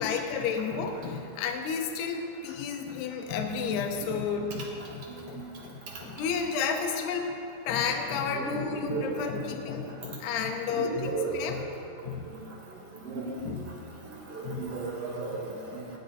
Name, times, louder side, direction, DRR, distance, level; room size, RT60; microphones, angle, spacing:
voice 1, 0.0-7.3 7.7-11.7 12.0-12.3 13.4-13.8 14.4-14.6, left 6 dB, 75° left, 3 dB, 2.9 m, -32 dB
voice 2, 8.5-9.3 10.8-11.4 12.9-13.2 14.3-16.0, right 4 dB, 45° right, -3 dB, 2.2 m, -34 dB
18.0 x 10.5 x 4.1 m, 2.7 s
omnidirectional pair, 4.8 m